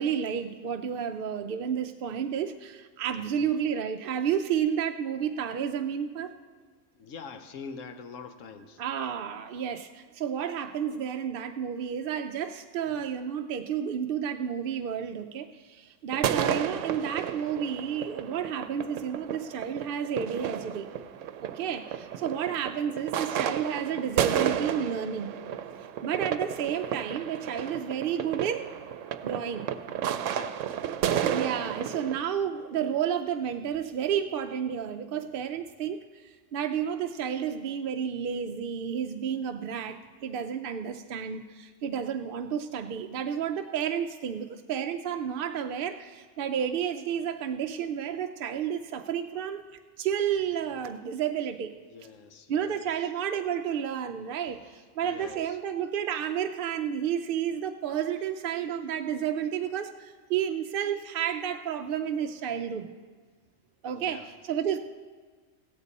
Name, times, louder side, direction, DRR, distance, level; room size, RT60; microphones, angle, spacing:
voice 1, 0.0-6.3 8.8-20.9 21.4-25.3 25.8-28.7 29.2-29.7 31.3-49.6 50.0-51.7 52.5-62.9 63.8-64.8, right 8 dB, 60° right, 6 dB, 0.6 m, -31 dB
voice 2, 3.2-3.5 7.0-8.8 30.1-30.8 51.9-53.1 54.5-54.7 55.0-55.6 63.8-64.3, left 5 dB, 85° left, 8 dB, 1.1 m, -45 dB
sound 1, 16.1-32.2, right 9 dB, 80° right, 0.9 m, -32 dB
15.5 x 13.5 x 4.1 m, 1.5 s
omnidirectional pair, 1.3 m